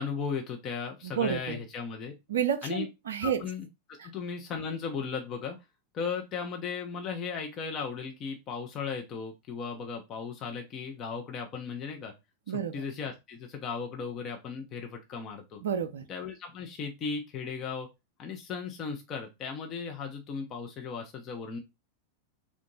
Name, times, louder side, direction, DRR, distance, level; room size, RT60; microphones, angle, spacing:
voice 1, 0.0-2.1 2.6-2.9 3.2-3.7 4.0-5.6 5.9-12.1 12.5-15.6 16.1-17.9 18.2-21.6, left 5 dB, 30° left, 0.8 m, -36 dB
voice 2, 1.0-1.6 2.3-3.4 4.0-4.1 12.5-12.8 15.6-16.1, right 8 dB, 65° right, 0.5 m, -30 dB
3.7 x 2.5 x 3.9 m
figure-of-eight pair, 90°, 0 cm